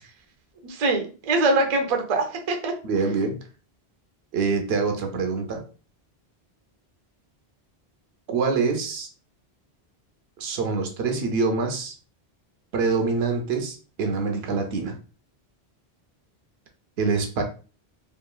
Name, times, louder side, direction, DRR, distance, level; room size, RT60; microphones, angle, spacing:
voice 1, 0.6-2.7, right 2 dB, 45° right, 3 dB, 0.6 m, -23 dB
voice 2, 2.8-3.4 4.3-5.6 8.3-9.1 10.4-11.9 12.7-14.9 17.0-17.4, right 4 dB, 75° right, 4 dB, 0.8 m, -25 dB
3.0 x 2.5 x 2.2 m, 0.36 s
omnidirectional pair, 1.1 m